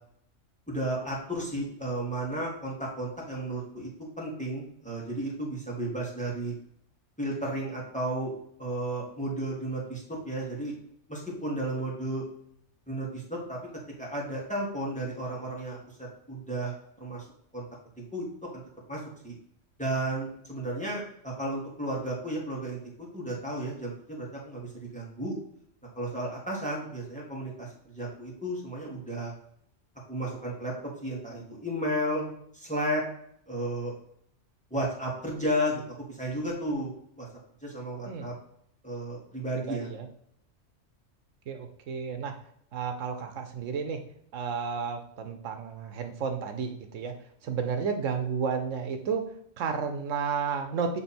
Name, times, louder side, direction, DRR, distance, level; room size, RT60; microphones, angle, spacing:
voice 1, 0.7-3.9 4.2-6.5 7.2-8.3 8.6-10.7 11.1-12.2 12.9-13.6 14.0-15.8 16.3-17.2 17.5-17.6 18.0-18.3 18.5-18.6 18.9-19.4 19.8-22.8 23.1-25.4 26.0-27.7 27.9-29.3 30.1-30.7 31.0-33.0 33.5-33.9 34.7-35.8 36.1-36.9 37.2-37.3 37.6-38.3 38.8-39.9, right 1 dB, 5° left, -4 dB, 1.8 m, -33 dB
voice 2, 39.6-40.1 41.5-42.3 42.7-44.0 44.3-47.1 47.4-49.2 49.6-51.0, right 6 dB, 80° right, 6 dB, 1.1 m, -32 dB
7.3 x 3.4 x 4.3 m, 0.69 s
omnidirectional pair, 1.3 m